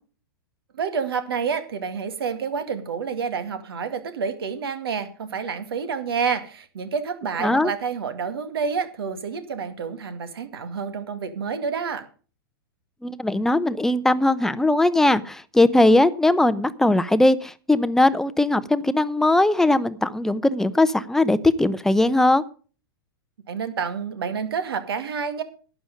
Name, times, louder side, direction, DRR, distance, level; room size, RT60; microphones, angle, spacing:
voice 1, 0.7-12.1 23.5-25.4, right 6 dB, 75° right, 10 dB, 2.1 m, -28 dB
voice 2, 7.4-7.7 13.0-22.4, left 2 dB, 5° left, 13 dB, 0.7 m, -19 dB
12.0 x 9.0 x 5.2 m, 0.38 s
hypercardioid pair, 110°, 13 cm